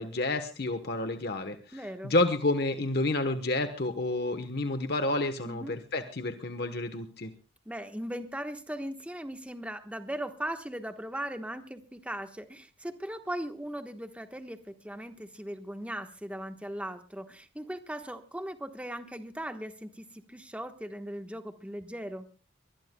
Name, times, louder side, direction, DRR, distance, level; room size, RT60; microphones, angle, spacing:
voice 1, 0.0-7.3, left 2 dB, 50° left, 8 dB, 1.1 m, -30 dB
voice 2, 1.7-2.1 5.4-5.7 7.6-22.3, right 1 dB, 5° right, 7 dB, 1.2 m, -38 dB
23.5 x 20.5 x 2.3 m, 0.35 s
head